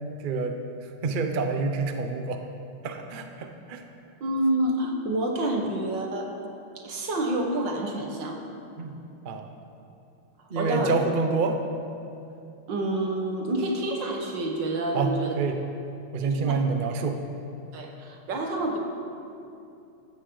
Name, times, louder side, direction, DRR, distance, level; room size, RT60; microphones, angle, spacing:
voice 1, 0.2-0.6 1.0-2.4 2.8-3.8 8.8-9.0 9.2-9.5 10.5-11.6 14.9-15.6 16.1-17.2, right 4 dB, 80° right, 5 dB, 0.4 m, -27 dB
voice 2, 4.2-6.3 6.8-8.4 10.6-10.9 12.7-15.3 16.2-16.6 17.7-18.8, right 1 dB, 60° right, 1 dB, 2.1 m, -28 dB
15.0 x 13.0 x 3.9 m, 2.7 s
omnidirectional pair, 2.3 m